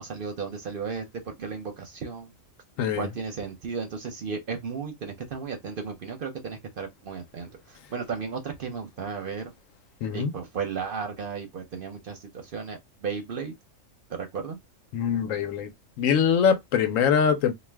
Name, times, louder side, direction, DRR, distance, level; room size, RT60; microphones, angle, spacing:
voice 1, 0.0-2.3 3.0-9.5 10.1-13.5 14.1-14.6, right 5 dB, 55° right, 0.7 m, -34 dB
voice 2, 10.0-10.3 14.9-15.7 16.0-17.5, left 7 dB, 80° left, 1.0 m, -23 dB
2.4 x 2.2 x 3.3 m
omnidirectional pair, 1.4 m